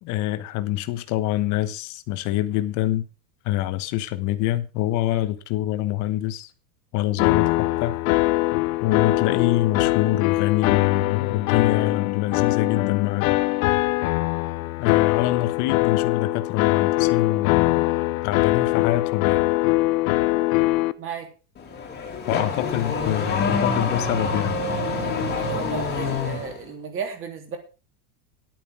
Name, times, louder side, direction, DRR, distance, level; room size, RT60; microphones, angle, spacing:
voice 1, 0.0-3.1 3.4-6.5 6.9-8.0 8.8-13.3 14.8-17.9 18.2-19.5 22.3-24.6, left 14 dB, 35° left, 1.1 m, -25 dB
sound 1, 7.2-20.9, left 20 dB, 55° left, 0.7 m, -22 dB
voice 2, 21.0-21.3 24.9-27.6, right 6 dB, 25° right, 3.0 m, -34 dB
Car / Accelerating revving vroom, 21.6-26.6, left 4 dB, 20° left, 2.3 m, -26 dB
11.0 x 9.1 x 4.8 m
supercardioid pair, 150°, 49 cm